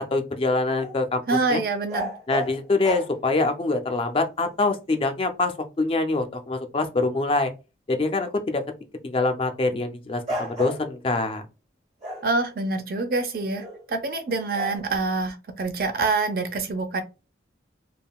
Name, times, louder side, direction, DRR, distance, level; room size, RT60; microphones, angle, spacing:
voice 1, 0.0-1.2 1.5-1.6 2.3-7.5 7.9-8.6 9.0-11.4, left 3 dB, 30° left, 0.4 m, -24 dB
sound 1, 0.8-1.0 1.9-3.1 5.1-5.2 10.3-11.2 12.0-13.9 14.5-14.8, equal, 35° right, 1.1 m, -34 dB
voice 2, 1.3-2.1 12.2-17.0, right 3 dB, 50° right, 0.5 m, -26 dB
3.5 x 2.1 x 2.3 m
head